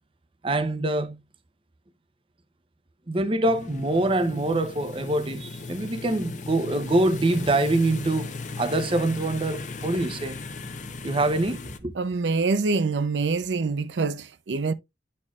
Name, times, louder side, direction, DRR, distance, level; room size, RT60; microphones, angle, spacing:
voice 1, 0.4-1.2 3.1-10.4 11.0-11.9, right 2 dB, 30° right, 0.7 m, -25 dB
sound 1, 3.4-11.8, left 3 dB, 45° left, 0.8 m, -37 dB
voice 2, 12.0-14.7, right 4 dB, 85° right, 0.5 m, -25 dB
10.5 x 4.3 x 2.3 m
head